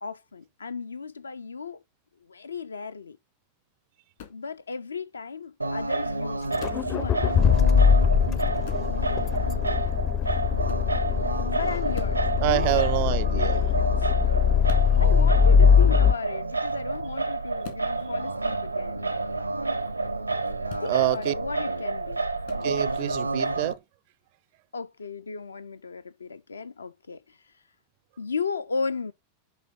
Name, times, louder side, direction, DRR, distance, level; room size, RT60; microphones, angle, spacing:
voice 1, 0.0-1.8 2.3-3.2 4.3-7.3 11.5-14.2 14.6-19.1 20.8-22.3 24.7-27.2 28.2-29.1, left 5 dB, 75° left, 0.6 m, -35 dB
sound 1, 4.2-4.4 6.6-6.9 8.6-8.9 10.6-10.9 11.9-12.2 14.6-14.9 17.6-17.9 20.6-20.9 22.4-22.6, left 8 dB, 55° left, 2.0 m, -41 dB
Singing, 5.6-23.7, right 3 dB, 85° right, 0.7 m, -29 dB
Accelerating revving vroom, 6.5-16.1, left 7 dB, 30° left, 0.5 m, -21 dB
voice 2, 12.4-13.7 20.9-21.3 22.6-23.8, right 20 dB, 50° right, 0.4 m, -26 dB
10.0 x 3.4 x 3.8 m
figure-of-eight pair, 90°, 0 cm